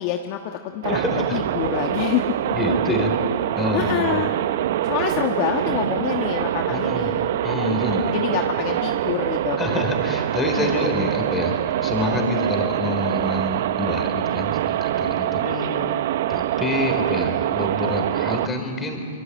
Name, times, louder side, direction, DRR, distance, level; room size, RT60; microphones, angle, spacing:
voice 1, 0.0-2.2 3.7-4.3 4.8-7.4 7.7-9.8 10.6-10.7 12.1-12.2 15.1-16.0 18.0-18.1, left 11 dB, 45° left, 4 dB, 1.3 m, -27 dB
sound 1, 0.8-18.5, right 12 dB, 60° right, 0.8 m, -24 dB
voice 2, 0.9-1.4 2.5-3.1 3.5-4.2 6.7-7.1 7.4-8.2 9.6-15.6 16.3-19.1, left 2 dB, 15° left, 4 dB, 4.2 m, -27 dB
24.5 x 22.0 x 8.8 m, 2.4 s
hypercardioid pair, 135°, 0 cm